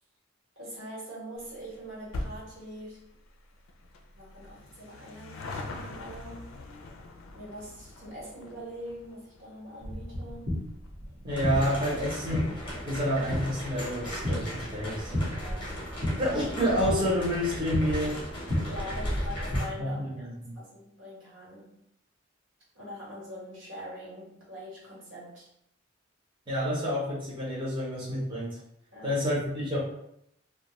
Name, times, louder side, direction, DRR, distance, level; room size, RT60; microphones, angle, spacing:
voice 1, 0.6-3.1 4.1-6.5 7.3-10.6 15.3-15.9 18.7-20.3 20.5-21.8 22.7-25.5 28.9-29.2, equal, 75° right, -6 dB, 1.2 m, -43 dB
sound 1, 1.4-14.1 14.4-14.5 15.4-15.5 15.7-15.8 16.1-16.2, left 2 dB, 85° left, 0.4 m, -44 dB
sound 2, 9.8-19.6, equal, 55° right, 1.1 m, -33 dB
voice 2, 11.2-12.5 12.9-15.1 16.2-18.2 19.8-20.5 26.5-28.6 29.0-29.8, equal, 25° right, -8 dB, 0.7 m, -29 dB
sound 3, 11.3-19.7, equal, 25° left, 0.7 m, -39 dB
2.2 x 2.2 x 2.9 m, 0.76 s
head